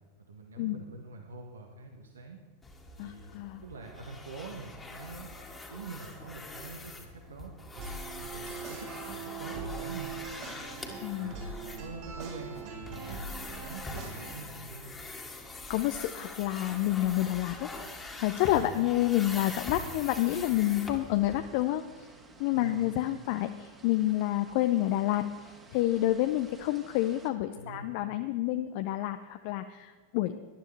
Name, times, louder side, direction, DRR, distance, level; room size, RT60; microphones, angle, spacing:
voice 1, 0.2-2.4 3.0-3.3 3.6-5.3 5.7-7.5 8.2-10.1 11.2-14.9 18.5-18.7 22.5-22.8 27.5-27.9, right 4 dB, 70° right, 2 dB, 1.5 m, -45 dB
sound 1, 2.6-21.4, left 2 dB, 15° left, 2.0 m, -44 dB
voice 2, 3.0-3.6 11.0-11.3 15.7-17.7 18.2-22.1 22.4-30.4, left 14 dB, 45° left, 9 dB, 0.6 m, -29 dB
sound 2, 7.7-14.3, right 4 dB, 45° right, 4.3 m, -41 dB
sound 3, 16.5-27.3, right 3 dB, 20° right, 2.0 m, -54 dB
18.5 x 12.0 x 3.4 m, 1.5 s
figure-of-eight pair, 90°, 0 cm